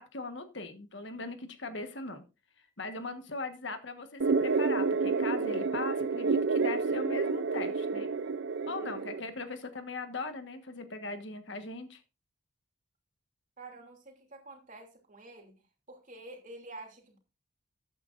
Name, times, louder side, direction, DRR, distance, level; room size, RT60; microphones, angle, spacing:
voice 1, 0.0-2.2 2.8-8.1 8.7-12.0, left 3 dB, 60° left, 8 dB, 1.4 m, -39 dB
sound 1, 4.2-9.2, right 4 dB, 60° right, 0.5 m, -29 dB
voice 2, 8.8-9.1 13.6-15.6 15.9-17.2, right 2 dB, 40° right, 2 dB, 2.9 m, -49 dB
14.0 x 9.0 x 2.6 m, 0.29 s
head